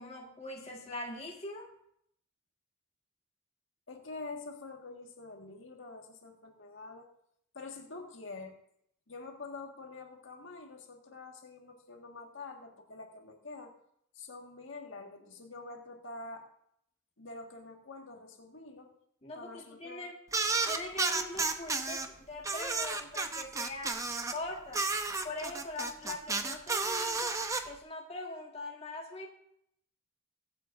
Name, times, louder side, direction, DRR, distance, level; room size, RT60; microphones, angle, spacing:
voice 1, 0.0-1.7 19.2-20.1 20.6-24.0 24.3-24.8 25.2-27.3 27.6-29.3, left 2 dB, 30° left, -1 dB, 1.7 m, -42 dB
voice 2, 3.9-7.1 7.5-8.5 9.1-13.7 14.1-16.4 17.2-18.9 19.3-20.1, left 3 dB, 70° left, 1 dB, 1.7 m, -46 dB
sound 1, 20.3-22.1 22.4-24.4 24.7-27.6, right 3 dB, 15° right, 0.7 m, -32 dB
22.5 x 8.1 x 2.6 m, 0.71 s
head